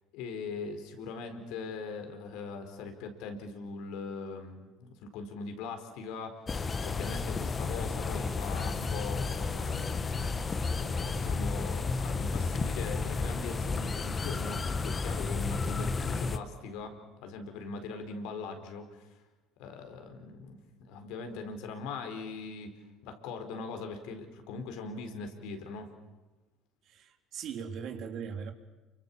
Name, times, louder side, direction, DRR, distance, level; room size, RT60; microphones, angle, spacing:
voice 1, 0.1-6.4 6.8-10.4 10.8-19.2 19.6-25.9, left 4 dB, 70° left, 6 dB, 4.5 m, -41 dB
sound 1, 6.5-16.4, left 4 dB, 30° left, 1.7 m, -32 dB
voice 2, 26.9-28.5, right 7 dB, 55° right, 6 dB, 3.4 m, -39 dB
29.5 x 24.5 x 7.4 m, 1.1 s
hypercardioid pair, 70°, 0 cm